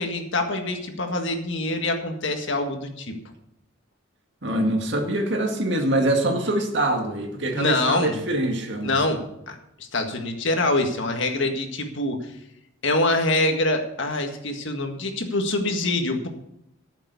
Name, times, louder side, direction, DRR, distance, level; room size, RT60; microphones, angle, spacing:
voice 1, 0.0-3.1 7.5-8.2 8.8-12.3 12.8-16.3, left 2 dB, 60° left, 4 dB, 1.8 m, -25 dB
voice 2, 4.4-9.0, right 1 dB, 55° right, 3 dB, 2.1 m, -24 dB
14.0 x 7.2 x 6.9 m, 0.82 s
head